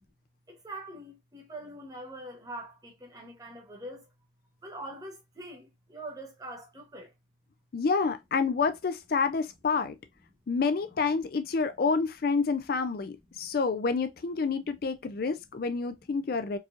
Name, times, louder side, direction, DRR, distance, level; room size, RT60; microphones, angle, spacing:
voice 1, 0.5-4.1 4.6-7.1 13.4-13.5, right 1 dB, 20° right, 1.2 m, -43 dB
voice 2, 7.7-10.0 10.5-16.6, left 4 dB, 50° left, 0.4 m, -28 dB
4.6 x 2.9 x 2.4 m
head